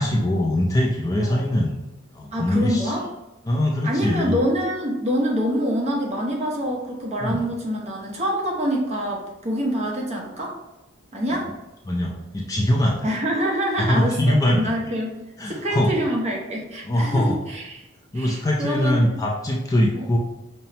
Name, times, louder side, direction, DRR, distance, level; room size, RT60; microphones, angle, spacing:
voice 1, 0.0-1.8 2.1-2.9 3.4-4.4 7.2-7.4 11.3-11.5 11.9-13.1 13.8-14.7 15.4-15.9 16.8-17.4 18.1-20.2, left 1 dB, 15° left, -2 dB, 0.4 m, -22 dB
voice 2, 2.3-3.0 3.8-10.6 11.1-11.5 13.0-15.2 15.5-17.8 18.1-19.2 19.9-20.1, equal, 30° right, -2 dB, 0.8 m, -26 dB
5.5 x 2.1 x 2.8 m, 0.98 s
head